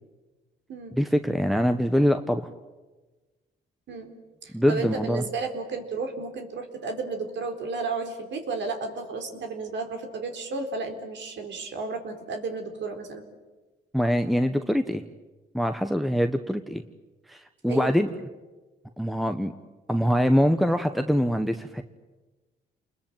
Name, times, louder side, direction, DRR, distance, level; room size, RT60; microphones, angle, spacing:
voice 1, 0.9-2.5 4.5-5.2 13.9-15.0 15.5-16.8 17.3-18.1 19.0-19.5 19.9-21.8, equal, ahead, 8 dB, 1.3 m, -24 dB
voice 2, 4.4-13.3 17.7-18.0, right 3 dB, 65° right, 5 dB, 4.2 m, -33 dB
28.5 x 21.5 x 9.2 m, 1.2 s
cardioid pair, 90°, 20 cm